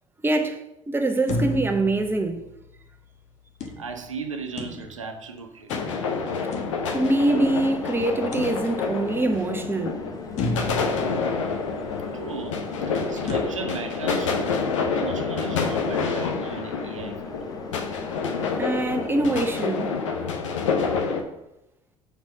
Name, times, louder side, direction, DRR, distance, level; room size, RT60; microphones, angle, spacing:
voice 1, 0.2-2.4 6.9-10.1 18.6-20.0, right 2 dB, 15° right, 0.9 m, -24 dB
sound 1, 1.3-2.9 3.6-5.2 5.7-7.6 8.3-9.2 9.7-9.8 10.4-12.1 13.3-13.4, left 2 dB, 45° left, 1.1 m, -33 dB
voice 2, 3.8-5.7 12.1-14.5 14.9-17.3, right 5 dB, 85° right, 0.5 m, -36 dB
sound 2, 5.7-21.2, left 5 dB, 75° left, 0.8 m, -28 dB
sound 3, 6.9-19.6, left 4 dB, 25° left, 0.9 m, -40 dB
5.5 x 4.7 x 5.3 m
figure-of-eight pair, 60°, 16 cm